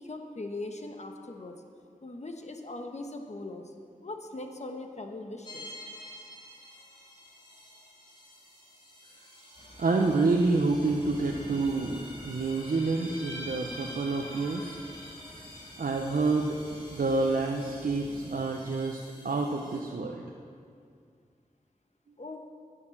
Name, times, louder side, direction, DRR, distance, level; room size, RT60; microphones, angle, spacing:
voice 1, 0.0-1.6 2.0-3.7 4.0-5.7 22.2-22.4, left 2 dB, 50° left, 4 dB, 1.2 m, -40 dB
sound 1, 5.4-19.8, equal, 35° left, 3.2 m, -47 dB
sound 2, 9.5-18.4, left 1 dB, 75° left, 2.3 m, -49 dB
voice 2, 9.8-14.8 15.8-16.6 16.9-20.2, right 3 dB, 80° right, 1 dB, 0.7 m, -28 dB
9.8 x 8.6 x 7.2 m, 2.2 s
wide cardioid pair, 60°, 15 cm